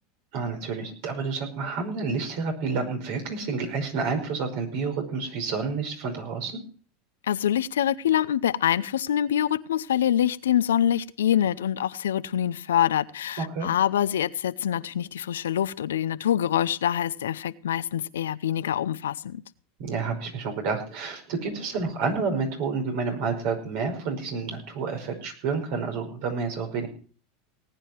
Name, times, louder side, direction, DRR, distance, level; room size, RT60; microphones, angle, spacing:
voice 1, 0.3-6.6 13.4-13.7 19.8-26.9, right 4 dB, 65° right, 5.4 m, -29 dB
voice 2, 7.3-19.4, left 10 dB, 85° left, 0.7 m, -25 dB
19.0 x 9.4 x 4.5 m
hypercardioid pair, 100°, 0 cm